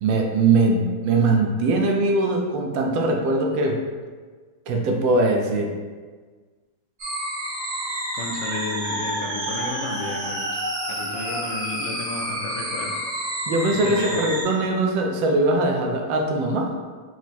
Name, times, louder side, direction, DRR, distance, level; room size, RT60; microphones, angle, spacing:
voice 1, 0.0-3.8 4.7-5.7 13.5-16.7, right 2 dB, 80° right, 1 dB, 1.3 m, -21 dB
sound 1, 7.0-14.4, right 1 dB, 50° right, 1.3 m, -29 dB
voice 2, 8.1-10.6 10.9-13.0 13.7-14.2, left 3 dB, 75° left, 0 dB, 1.2 m, -32 dB
4.6 x 2.0 x 4.1 m, 1.5 s
omnidirectional pair, 2.1 m